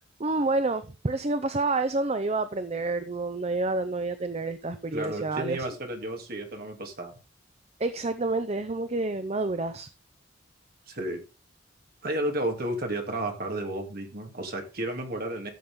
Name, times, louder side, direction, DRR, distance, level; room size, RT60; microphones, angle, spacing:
voice 1, 0.2-5.7 7.8-9.9, right 2 dB, 30° right, 10 dB, 0.7 m, -28 dB
voice 2, 4.9-7.2 10.9-11.2 12.0-15.5, right 1 dB, 50° right, 3 dB, 2.8 m, -32 dB
14.0 x 7.2 x 3.7 m, 0.30 s
head